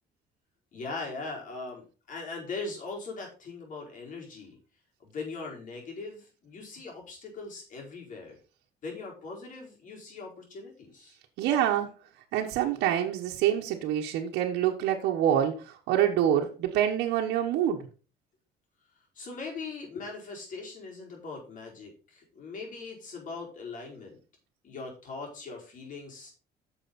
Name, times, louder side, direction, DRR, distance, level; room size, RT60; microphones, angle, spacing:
voice 1, 0.7-4.6 5.0-8.4 8.8-11.2 19.1-24.2 24.6-26.3, left 3 dB, 50° left, 4.9 m, -40 dB
voice 2, 11.4-11.9 12.3-17.8, right 10 dB, 85° right, 1.2 m, -26 dB
9.1 x 6.8 x 4.2 m
cardioid pair, 110°, 17 cm